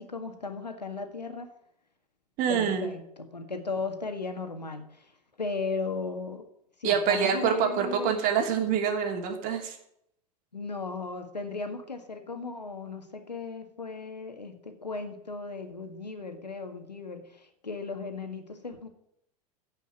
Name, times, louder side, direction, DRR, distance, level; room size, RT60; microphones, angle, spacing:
voice 1, 0.0-1.5 2.5-5.1 5.4-6.5 6.8-8.2 10.5-18.9, left 4 dB, 85° left, 6 dB, 1.9 m, -36 dB
voice 2, 2.4-2.9 6.8-9.8, right 7 dB, 40° right, 4 dB, 2.9 m, -26 dB
15.5 x 5.8 x 9.0 m, 0.75 s
figure-of-eight pair, 90°, 21 cm